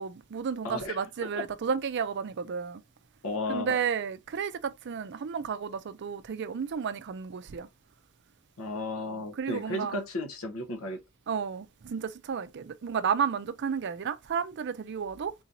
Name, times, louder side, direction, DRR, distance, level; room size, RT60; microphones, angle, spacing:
voice 1, 0.0-2.8 3.5-7.7 9.0-10.0 11.3-15.3, right 6 dB, 55° right, 0.4 m, -32 dB
voice 2, 0.6-1.0 3.2-3.8 8.6-11.0, left 2 dB, 75° left, 0.7 m, -34 dB
3.8 x 2.6 x 2.8 m
head